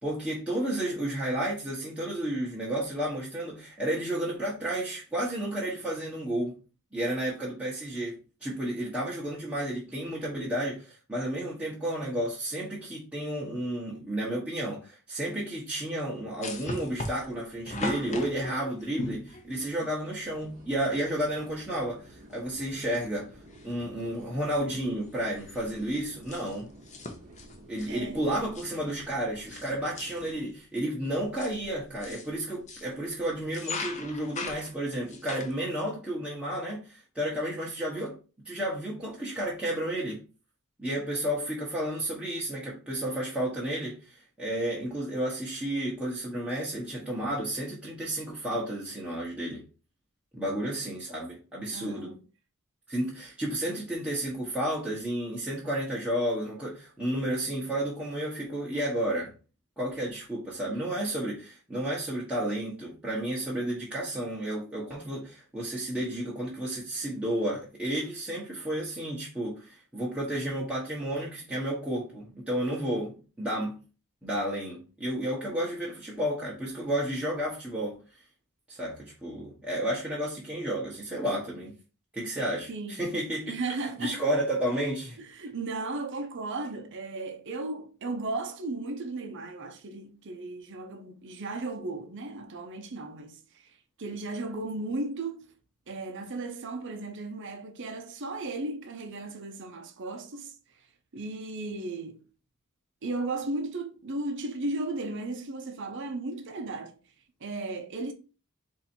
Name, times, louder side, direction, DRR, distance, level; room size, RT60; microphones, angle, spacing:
voice 1, 0.0-6.5 6.9-23.3 23.6-26.7 27.7-38.2 38.4-40.2 40.8-49.6 50.3-52.1 52.9-59.3 59.8-73.8 74.2-78.0 78.7-81.7 82.1-83.6 84.0-85.2, right 1 dB, 5° right, 1.0 m, -32 dB
sound 1, 16.4-20.0 21.1-21.2 21.5-21.6 22.3-22.7 23.0-23.9 24.2-24.4 24.7-29.7 29.9-30.4 31.0-32.9 33.4-35.6, left 2 dB, 30° left, 0.7 m, -39 dB
sound 2, 20.2-30.5, right 1 dB, 35° right, 1.0 m, -52 dB
voice 2, 27.9-28.2 50.5-50.6 51.7-52.2 82.7-83.1 83.5-84.2 85.2-93.7 94.0-95.5 95.9-100.5 101.1-102.2 103.0-106.9 107.4-108.1, right 2 dB, 55° right, 0.7 m, -35 dB
4.1 x 2.7 x 4.3 m
head